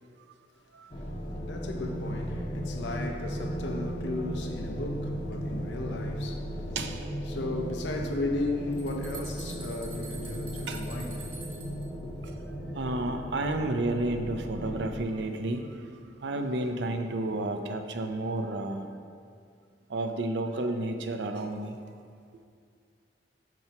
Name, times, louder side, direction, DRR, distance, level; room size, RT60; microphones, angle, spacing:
voice 1, 0.7-1.1 6.7-7.1 10.7-10.8 12.7-18.9 19.9-21.8, right 2 dB, 80° right, 0.6 m, -31 dB
sound 1, 0.9-15.0, equal, 30° left, 0.7 m, -36 dB
voice 2, 1.4-6.8 7.3-11.4 11.9-12.1, left 2 dB, 80° left, 0.6 m, -35 dB
sound 2, 8.7-11.9, right 5 dB, 30° right, 1.3 m, -46 dB
9.0 x 5.8 x 2.8 m
head